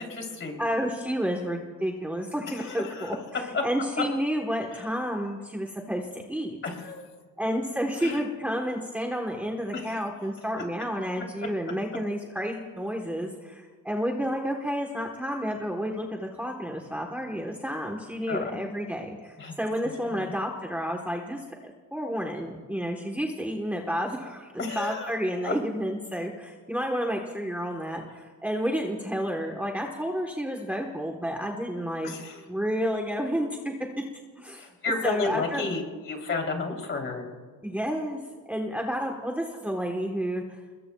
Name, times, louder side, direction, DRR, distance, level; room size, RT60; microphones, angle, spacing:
voice 1, 0.0-0.6 2.5-3.1 3.5-3.6 4.7-4.8 6.6-7.0 8.0-8.2 9.7-10.1 18.3-18.5 19.4-19.5 20.0-20.3 24.6-25.1 25.4-25.5 32.0-32.4 34.6-37.3, left 3 dB, 35° left, 2 dB, 3.3 m, -32 dB
voice 2, 0.6-6.6 7.4-32.1 32.5-33.7 34.4-34.7 35.0-35.7 37.6-40.4, equal, 5° right, 1 dB, 1.2 m, -30 dB
29.5 x 21.0 x 2.3 m, 1.4 s
cardioid pair, 150°, 34 cm